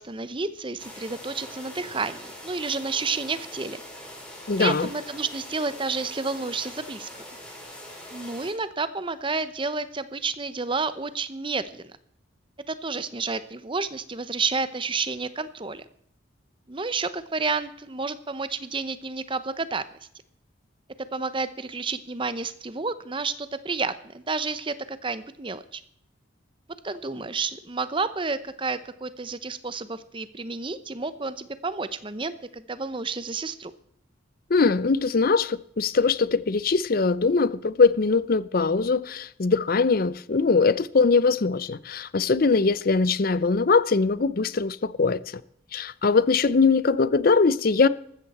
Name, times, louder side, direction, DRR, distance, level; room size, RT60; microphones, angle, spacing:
voice 1, 0.0-3.8 4.6-7.1 8.1-11.9 12.7-15.8 16.7-19.9 21.1-25.8 26.8-33.7, right 4 dB, 25° right, 0.8 m, -30 dB
sound 1, 0.8-8.5, equal, 5° left, 4.1 m, -42 dB
voice 2, 4.5-4.9 34.5-45.4 45.7-47.9, left 4 dB, 50° left, 0.5 m, -21 dB
15.0 x 13.0 x 4.3 m
head